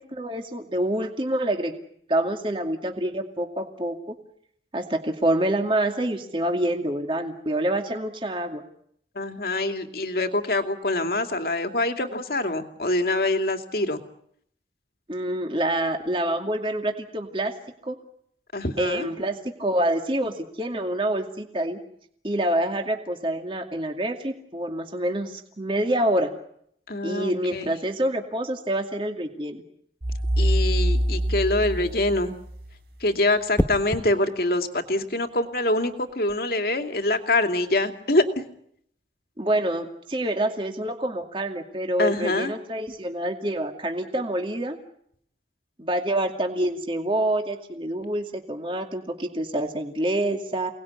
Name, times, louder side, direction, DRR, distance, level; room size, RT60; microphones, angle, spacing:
voice 1, 0.1-1.7 2.1-4.1 4.7-8.6 15.1-17.5 17.8-18.0 18.8-21.8 22.2-26.3 27.0-29.6 39.4-44.8 45.8-50.7, right 1 dB, 30° right, 4 dB, 2.4 m, -27 dB
voice 2, 9.1-14.0 18.5-19.1 26.9-27.8 30.4-32.3 33.0-38.5 42.0-42.5, left 2 dB, 55° left, 6 dB, 2.5 m, -25 dB
sound 1, 30.0-32.8, equal, 65° right, 3.8 m, -24 dB
sound 2, 30.7-31.1 33.6-34.1 36.1-36.4, equal, 15° left, 1.1 m, -28 dB
29.0 x 19.5 x 9.7 m, 0.71 s
head